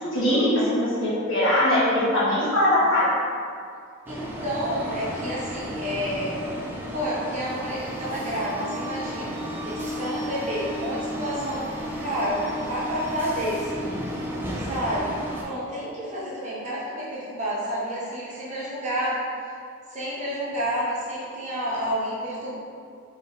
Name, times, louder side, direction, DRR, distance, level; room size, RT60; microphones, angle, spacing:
voice 1, 0.0-3.1, left 1 dB, 60° left, -8 dB, 1.3 m, -21 dB
sound 1, 4.1-15.4, equal, 10° right, 0.4 m, -33 dB
voice 2, 4.1-6.4 6.9-11.7 12.0-14.2 14.5-19.2 19.9-22.6, equal, 35° right, -8 dB, 1.0 m, -30 dB
4.0 x 3.5 x 3.3 m, 2.3 s
head